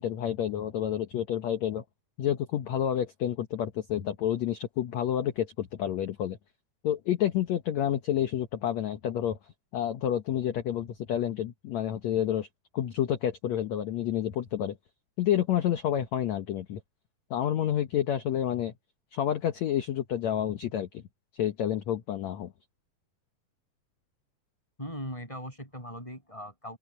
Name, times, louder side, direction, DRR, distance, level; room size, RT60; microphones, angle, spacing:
voice 1, 0.0-1.8 2.2-6.4 6.8-9.4 9.7-12.5 12.7-14.8 15.2-16.8 17.3-18.7 19.1-21.0 21.3-22.5, left 10 dB, 65° left, 2.0 m, -29 dB
voice 2, 24.8-26.8, equal, 10° left, 7.5 m, -39 dB
open air
omnidirectional pair, 4.2 m